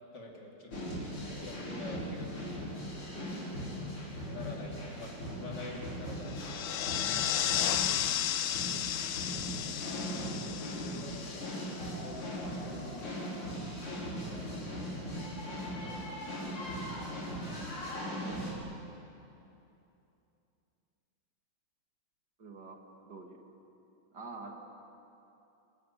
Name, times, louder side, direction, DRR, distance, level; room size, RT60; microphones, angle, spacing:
voice 1, 0.1-0.9 1.4-2.5 3.6-3.9 4.3-6.6 10.4-13.5 13.8-15.2, left 2 dB, 50° left, -1 dB, 3.5 m, -48 dB
sound 1, 0.7-18.5, equal, 90° left, 5.8 m, -39 dB
sound 2, 6.3-12.1, left 11 dB, 65° left, 1.2 m, -33 dB
voice 2, 7.1-7.5 18.2-18.4 22.4-22.8 23.1-23.4 24.1-24.5, right 4 dB, 50° right, 2 dB, 2.4 m, -46 dB
28.5 x 14.0 x 9.9 m, 2.8 s
omnidirectional pair, 2.3 m